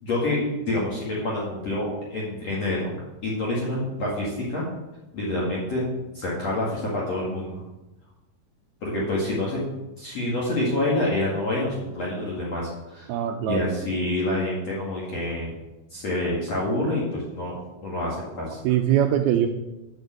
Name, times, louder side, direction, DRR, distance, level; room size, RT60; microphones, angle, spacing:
voice 1, 0.0-2.9 3.2-4.7 5.1-5.9 6.1-7.6 8.8-9.7 10.0-13.1 13.4-15.5 15.9-18.6, left 1 dB, 45° left, -5 dB, 2.7 m, -27 dB
voice 2, 13.1-13.7 18.6-19.5, right 11 dB, 85° right, 6 dB, 2.3 m, -22 dB
9.0 x 7.9 x 7.7 m, 1.0 s
omnidirectional pair, 5.0 m